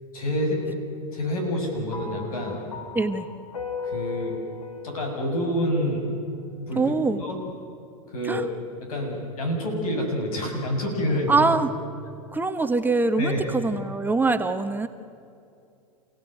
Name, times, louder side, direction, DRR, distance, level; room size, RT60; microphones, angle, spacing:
voice 1, 0.1-0.6 1.1-2.6 3.8-4.4 4.8-6.1 6.6-7.4 8.1-8.4 8.8-11.5 13.2-13.4, equal, 75° left, 3 dB, 7.2 m, -27 dB
sound 1, 1.9-6.3, left 5 dB, 90° left, 3.5 m, -37 dB
voice 2, 2.9-3.3 6.7-7.2 8.2-8.4 11.3-11.7 12.3-14.9, right 3 dB, 10° right, 7 dB, 1.1 m, -23 dB
28.5 x 17.0 x 9.2 m, 2.5 s
hypercardioid pair, 105°, 19 cm